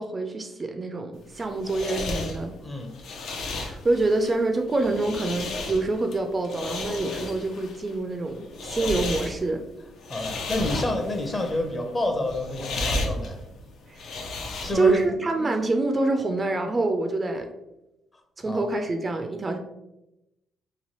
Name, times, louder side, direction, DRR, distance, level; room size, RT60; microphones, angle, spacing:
voice 1, 0.0-2.5 3.5-9.6 13.9-14.1 14.7-17.5 18.4-19.6, right 2 dB, 30° right, 5 dB, 0.3 m, -26 dB
sound 1, 1.2-15.1, left 2 dB, 75° left, 0.5 m, -33 dB
voice 2, 2.6-2.9 8.8-8.9 10.1-13.4 14.6-15.5 18.4-18.7, left 1 dB, 25° left, 3 dB, 0.6 m, -28 dB
3.0 x 2.2 x 3.0 m, 0.92 s
cardioid pair, 90°, 0 cm